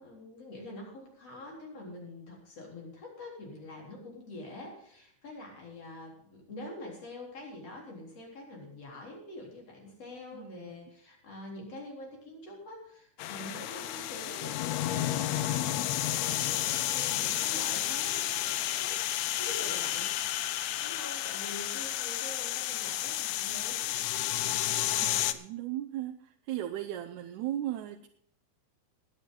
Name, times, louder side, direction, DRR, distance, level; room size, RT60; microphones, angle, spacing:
voice 1, 0.0-19.0 19.4-23.8, left 1 dB, 55° left, -1 dB, 4.8 m, -45 dB
voice 2, 10.3-10.7 25.0-28.1, right 12 dB, 90° right, 3 dB, 2.2 m, -37 dB
sound 1, 13.2-25.3, left 13 dB, 80° left, 2.0 m, -31 dB
20.5 x 9.0 x 3.8 m, 0.69 s
omnidirectional pair, 3.3 m